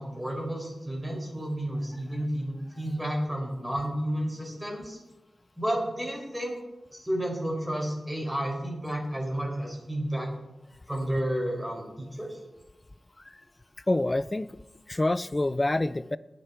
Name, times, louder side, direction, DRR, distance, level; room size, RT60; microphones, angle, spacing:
voice 1, 0.0-5.0 5.6-6.5 6.9-10.3 10.9-12.4, right 1 dB, 10° right, -1 dB, 4.9 m, -31 dB
voice 2, 13.9-14.5 14.9-16.2, left 2 dB, 25° left, 17 dB, 0.4 m, -26 dB
20.0 x 6.8 x 4.5 m, 1.0 s
wide cardioid pair, 75°, 0 cm